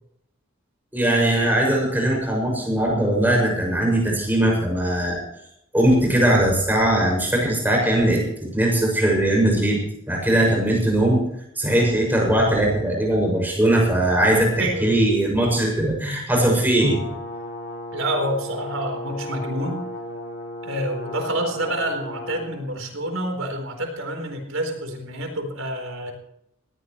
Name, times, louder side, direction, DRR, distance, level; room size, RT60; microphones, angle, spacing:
voice 1, 0.9-5.2 5.7-11.2 11.5-17.0, right 1 dB, 10° right, -1 dB, 6.5 m, -20 dB
voice 2, 14.6-15.0 17.9-19.9 20.6-26.1, right 1 dB, 75° right, 4 dB, 4.1 m, -28 dB
Brass instrument, 16.8-22.6, left 1 dB, 55° left, 4.2 m, -35 dB
20.0 x 17.0 x 3.2 m, 0.75 s
head